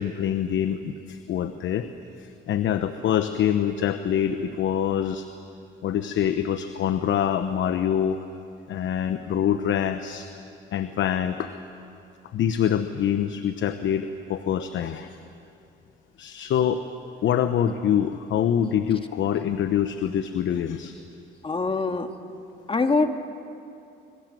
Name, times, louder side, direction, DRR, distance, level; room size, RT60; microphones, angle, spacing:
voice 1, 0.0-1.9 2.5-5.2 5.8-8.2 8.7-10.3 10.7-11.5 12.3-15.2 16.2-16.8 17.2-20.9, left 9 dB, 70° left, 9 dB, 1.0 m, -25 dB
voice 2, 21.4-22.1 22.7-23.3, left 3 dB, 25° left, 6 dB, 1.9 m, -24 dB
25.5 x 23.0 x 7.8 m, 2.8 s
cardioid pair, 90°, 20 cm